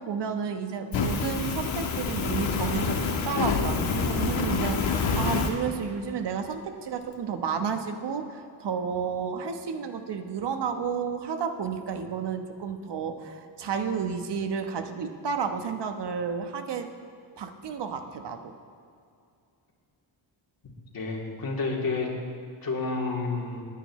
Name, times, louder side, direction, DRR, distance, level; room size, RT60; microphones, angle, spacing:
voice 1, 0.0-16.9 17.4-18.5, right 6 dB, 60° right, 7 dB, 1.2 m, -31 dB
Fire, 0.9-5.5, left 4 dB, 70° left, 1.6 m, -27 dB
voice 2, 20.9-22.1 22.6-23.6, left 3 dB, 45° left, -3 dB, 3.2 m, -30 dB
19.5 x 10.0 x 3.2 m, 2.4 s
cardioid pair, 75°, 48 cm